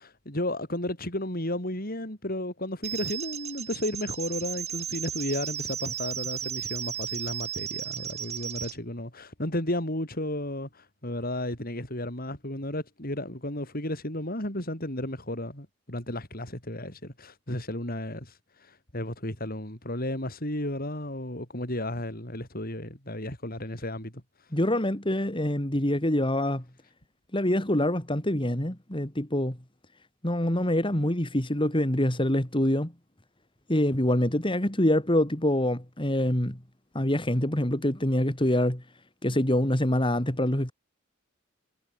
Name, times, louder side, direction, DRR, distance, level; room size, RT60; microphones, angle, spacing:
voice 1, 0.0-24.1 24.4-24.5, left 1 dB, 45° left, 8.0 m, -33 dB
sound 1, 2.8-8.8, right 9 dB, 35° right, 2.7 m, -35 dB
voice 2, 24.5-26.6 27.3-29.6 30.2-32.9 33.7-36.6 36.9-38.8 39.2-40.7, left 1 dB, 25° left, 3.0 m, -25 dB
head